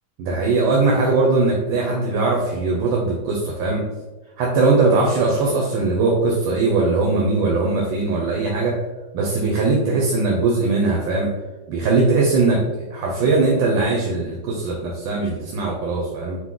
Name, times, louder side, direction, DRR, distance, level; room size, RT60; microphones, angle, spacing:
voice 1, 0.2-3.8 4.4-8.8 9.1-11.3 11.7-12.6 12.9-16.4, right 3 dB, 90° right, -2 dB, 1.4 m, -20 dB
4.6 x 2.1 x 3.7 m, 1.2 s
omnidirectional pair, 2.0 m